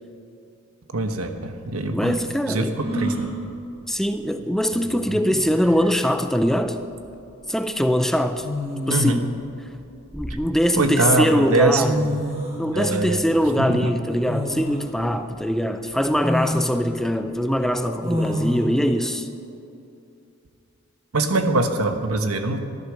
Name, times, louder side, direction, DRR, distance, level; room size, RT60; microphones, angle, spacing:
voice 1, 0.9-2.2 2.5-3.3 5.1-5.2 8.9-9.2 10.7-12.1 12.7-13.2 13.7-13.9 21.1-22.6, right 2 dB, 85° right, 7 dB, 1.2 m, -22 dB
voice 2, 1.9-2.8 3.9-6.8 7.5-8.5 8.9-9.3 10.1-12.0 12.6-19.3, equal, ahead, 8 dB, 0.4 m, -22 dB
sound 1, 2.8-3.3 4.8-4.9 5.3-5.8 7.1-7.3 8.4-9.2 9.8-10.8 11.5-11.6 11.8-12.6 14.3-14.9 15.4-15.5 16.2-16.7 18.0-18.6, equal, 25° right, 2.9 m, -28 dB
13.5 x 11.5 x 6.4 m, 2.6 s
head